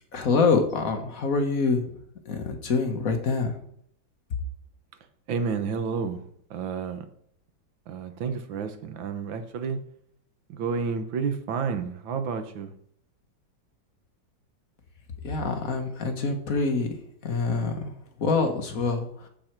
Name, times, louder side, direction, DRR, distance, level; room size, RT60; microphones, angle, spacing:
voice 1, 0.1-1.8 2.3-3.5 15.2-16.9 17.2-17.9 18.2-19.1, left 4 dB, 50° left, 1.5 m, -25 dB
voice 2, 5.3-6.2 6.5-7.1 7.9-9.8 10.5-12.7, right 5 dB, 80° right, 1.7 m, -30 dB
14.0 x 4.8 x 4.5 m
omnidirectional pair, 2.1 m